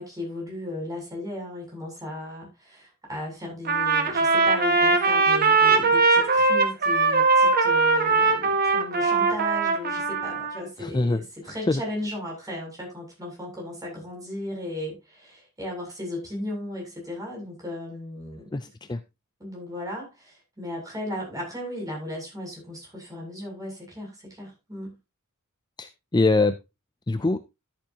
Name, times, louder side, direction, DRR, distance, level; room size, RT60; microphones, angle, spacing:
voice 1, 0.0-18.5 19.4-25.0, left 1 dB, 15° right, 7.6 m, -36 dB
Trumpet, 3.6-10.6, right 4 dB, 45° right, 1.6 m, -21 dB
voice 2, 10.8-11.8 18.5-19.0 25.8-26.6 27.1-27.4, left 2 dB, 20° left, 0.5 m, -24 dB
13.5 x 8.8 x 2.9 m
head